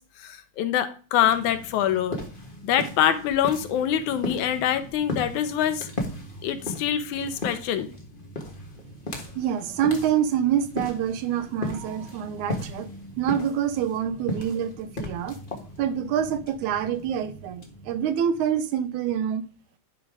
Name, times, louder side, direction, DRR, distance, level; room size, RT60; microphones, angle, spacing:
voice 1, 0.2-2.2 2.6-5.9 6.4-7.9, left 10 dB, 75° left, 2.2 m, -25 dB
sound 1, 1.2-18.7, left 1 dB, 55° left, 0.5 m, -37 dB
voice 2, 9.4-12.9 13.2-15.4 15.8-19.5, right 9 dB, 80° right, 2.0 m, -26 dB
11.0 x 3.7 x 4.7 m
omnidirectional pair, 3.6 m